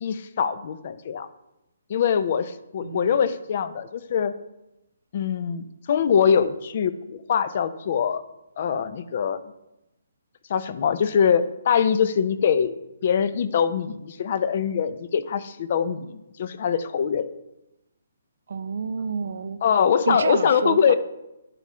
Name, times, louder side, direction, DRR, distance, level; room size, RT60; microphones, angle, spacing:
voice 1, 0.0-1.3 1.9-4.3 5.1-8.2 8.6-9.4 10.5-12.7 13.0-17.3 19.6-21.0, left 7 dB, 45° left, 14 dB, 0.5 m, -23 dB
voice 2, 2.8-3.2 18.5-19.6 20.1-21.0, right 5 dB, 65° right, 13 dB, 0.5 m, -29 dB
11.0 x 5.0 x 4.3 m, 0.92 s
hypercardioid pair, 160°, 0 cm